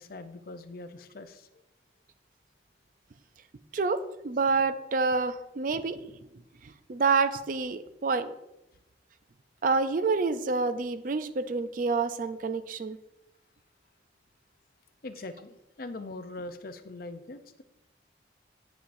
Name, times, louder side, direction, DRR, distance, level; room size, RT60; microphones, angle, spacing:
voice 1, 0.0-1.5 15.0-17.6, left 2 dB, 50° left, 10 dB, 0.5 m, -42 dB
voice 2, 3.7-6.1 6.6-8.3 9.6-13.0, right 4 dB, 45° right, 11 dB, 0.4 m, -28 dB
8.8 x 7.0 x 2.6 m, 0.92 s
head